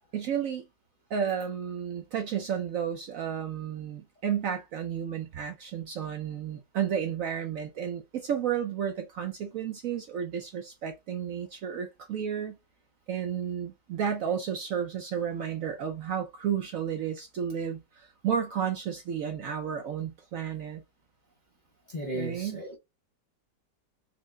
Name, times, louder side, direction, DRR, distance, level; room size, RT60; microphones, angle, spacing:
voice 1, 0.1-0.7 1.1-12.6 13.1-20.8 22.1-22.6, right 8 dB, 65° right, 0.8 m, -32 dB
voice 2, 21.9-22.8, equal, 35° left, 0.8 m, -35 dB
4.5 x 2.1 x 3.6 m
omnidirectional pair, 1.8 m